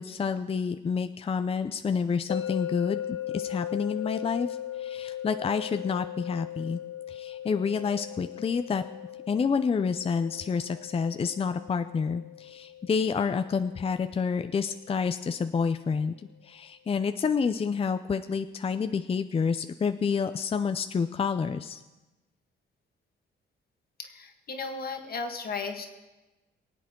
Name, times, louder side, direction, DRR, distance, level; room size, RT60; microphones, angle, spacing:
voice 1, 0.0-4.5 4.8-6.8 7.1-8.8 9.3-16.1 16.4-21.8, left 5 dB, 30° left, 9 dB, 0.5 m, -29 dB
sound 1, 2.3-15.4, left 11 dB, 70° left, 0.9 m, -39 dB
voice 2, 24.0-25.9, left 4 dB, 50° left, 5 dB, 1.7 m, -35 dB
24.0 x 8.2 x 3.8 m, 1.1 s
cardioid pair, 90°, 20 cm